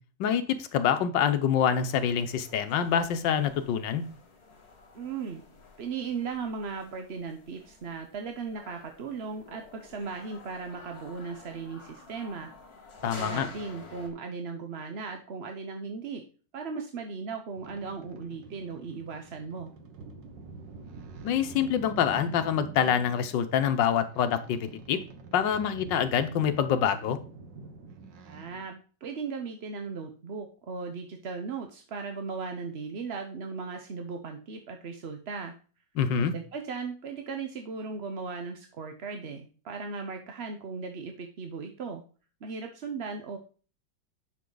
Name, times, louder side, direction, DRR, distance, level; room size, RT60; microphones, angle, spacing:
voice 1, 0.2-4.0 13.0-13.5 21.2-25.0 25.3-27.2 36.0-36.3, left 8 dB, 90° left, 10 dB, 1.6 m, -26 dB
sound 1, 1.8-14.1, left 3 dB, 55° left, 2.5 m, -50 dB
voice 2, 4.9-5.4 5.8-12.5 13.0-16.2 16.5-19.7 28.3-35.5 36.2-42.0 42.4-43.4, right 5 dB, 50° right, 5 dB, 0.8 m, -37 dB
sound 2, 17.5-28.6, right 4 dB, 80° right, 1.8 m, -46 dB
10.5 x 6.1 x 3.9 m, 0.39 s
omnidirectional pair, 1.9 m